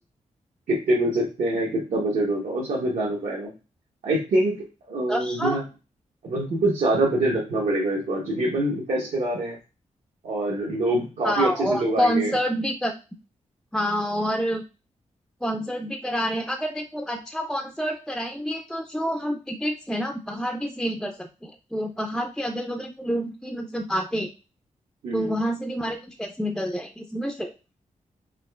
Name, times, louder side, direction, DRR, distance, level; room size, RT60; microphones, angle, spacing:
voice 1, 0.7-3.5 4.0-5.6 6.2-9.6 10.2-12.3 25.0-25.4, right 1 dB, 80° right, -3 dB, 1.0 m, -25 dB
voice 2, 5.1-5.6 11.2-12.9 13.7-14.6 15.4-24.3 25.1-27.5, equal, 5° left, 5 dB, 0.3 m, -28 dB
4.9 x 2.3 x 2.3 m, 0.31 s
wide cardioid pair, 110°, 13 cm